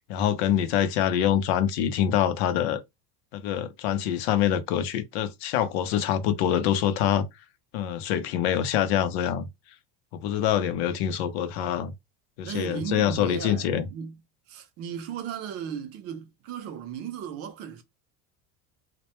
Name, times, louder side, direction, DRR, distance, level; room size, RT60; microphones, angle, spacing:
voice 1, 0.1-2.8 3.3-7.3 7.7-9.5 10.1-11.9 12.4-13.8, left 10 dB, 90° left, 0.5 m, -25 dB
voice 2, 12.4-14.2 14.5-17.8, right 8 dB, 50° right, 0.5 m, -36 dB
2.1 x 2.1 x 2.8 m
cardioid pair, 135°, 32 cm